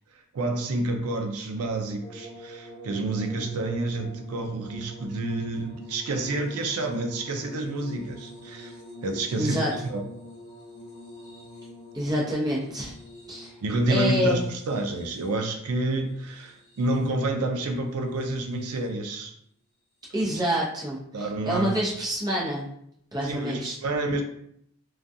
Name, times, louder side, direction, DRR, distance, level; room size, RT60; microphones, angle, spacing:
voice 1, 0.3-8.7 9.0-9.6 9.8-10.0 13.6-19.3 21.1-21.8 23.2-24.2, right 2 dB, 85° right, 4 dB, 0.4 m, -29 dB
sound 1, 2.0-17.3 18.1-18.8 20.3-20.4, left 1 dB, 35° left, 0.8 m, -46 dB
voice 2, 9.4-9.7 11.9-12.9 13.3-13.5 13.9-14.4 20.1-22.7 23.1-23.7, equal, 20° right, -5 dB, 0.7 m, -27 dB
2.3 x 2.3 x 2.6 m, 0.71 s
head